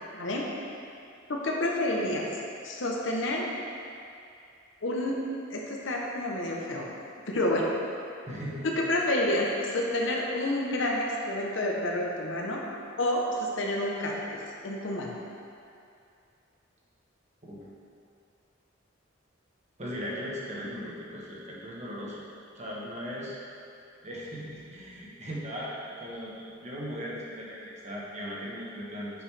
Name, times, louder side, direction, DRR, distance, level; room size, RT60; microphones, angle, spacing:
voice 1, 0.1-0.5 1.3-2.3 2.6-3.5 4.8-5.2 5.5-6.9 7.3-7.7 8.6-12.6 13.0-15.1, left 1 dB, 65° left, -2 dB, 0.9 m, -29 dB
voice 2, 8.3-8.7 17.4-17.7 19.8-22.2 22.5-23.4 24.0-29.1, equal, 35° right, -5 dB, 1.1 m, -38 dB
8.4 x 5.0 x 3.3 m, 2.5 s
head